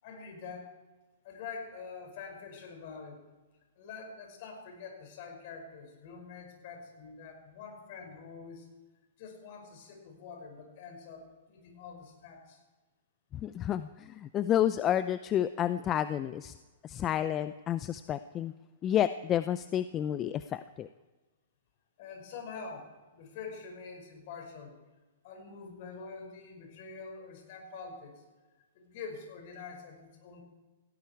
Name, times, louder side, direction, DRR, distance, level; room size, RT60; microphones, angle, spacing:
voice 1, 0.0-0.7 1.2-3.2 3.8-8.7 9.2-12.6 22.0-24.8 25.2-28.2 28.7-30.4, left 5 dB, 50° left, 3 dB, 5.8 m, -45 dB
voice 2, 13.3-16.5 16.8-18.5 18.8-20.9, left 10 dB, 25° left, 13 dB, 0.5 m, -30 dB
18.0 x 16.5 x 4.7 m, 1.2 s
hypercardioid pair, 130°, 0 cm